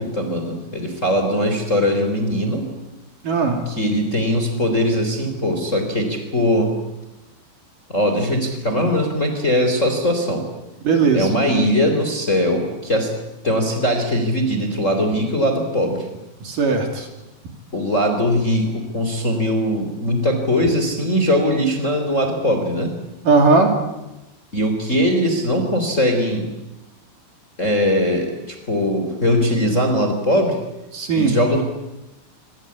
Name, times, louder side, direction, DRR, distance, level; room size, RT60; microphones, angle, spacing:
voice 1, 0.0-2.6 3.6-6.7 7.9-10.5 11.1-13.1 13.4-16.0 17.7-22.9 24.5-26.5 27.6-30.6 31.1-31.6, equal, 20° left, 5 dB, 3.2 m, -20 dB
voice 2, 3.2-3.6 10.8-11.3 16.4-17.1 23.2-23.7 30.9-31.4, right 4 dB, 55° right, 4 dB, 4.2 m, -17 dB
26.0 x 23.5 x 8.6 m, 0.98 s
omnidirectional pair, 5.0 m